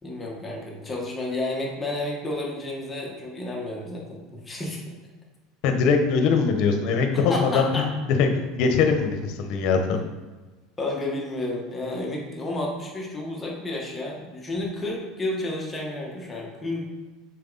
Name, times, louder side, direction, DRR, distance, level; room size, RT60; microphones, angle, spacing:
voice 1, 0.0-4.8 7.1-7.9 10.8-16.9, left 2 dB, 15° left, -2 dB, 1.6 m, -31 dB
voice 2, 5.6-10.0, left 5 dB, 60° left, 5 dB, 1.1 m, -22 dB
6.7 x 4.7 x 4.1 m, 1.2 s
supercardioid pair, 130°, 0 cm